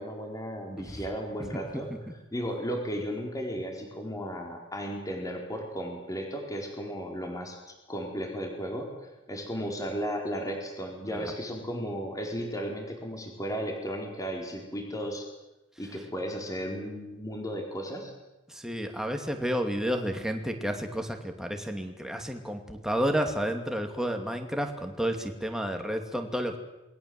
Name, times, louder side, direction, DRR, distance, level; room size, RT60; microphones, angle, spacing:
voice 1, 0.0-1.9 2.3-15.3 15.8-18.1, equal, 20° left, 2 dB, 4.3 m, -35 dB
voice 2, 1.5-2.0 11.1-11.3 18.5-26.6, equal, 5° right, 4 dB, 2.8 m, -31 dB
27.5 x 21.5 x 7.9 m, 1.0 s
head